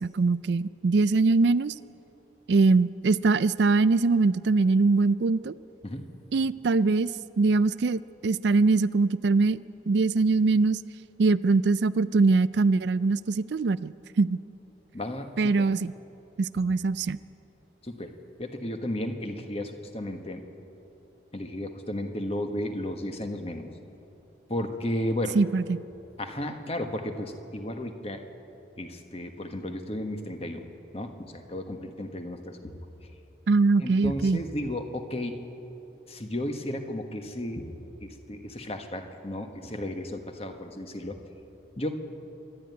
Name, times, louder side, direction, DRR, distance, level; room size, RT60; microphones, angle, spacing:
voice 1, 0.0-1.7 2.5-5.5 6.3-7.1 7.4-9.6 9.9-10.8 11.2-14.4 15.4-15.9 16.4-17.2 25.3-25.8 33.5-34.4, right 3 dB, 65° right, 16 dB, 0.4 m, -22 dB
voice 2, 14.9-15.3 17.8-20.4 21.3-23.7 24.5-25.4 26.2-28.2 28.8-30.6 30.9-32.7 33.8-35.4 36.1-37.7 38.0-41.2 41.8-42.0, left 1 dB, 30° left, 5 dB, 1.4 m, -34 dB
26.0 x 11.0 x 9.5 m, 3.0 s
head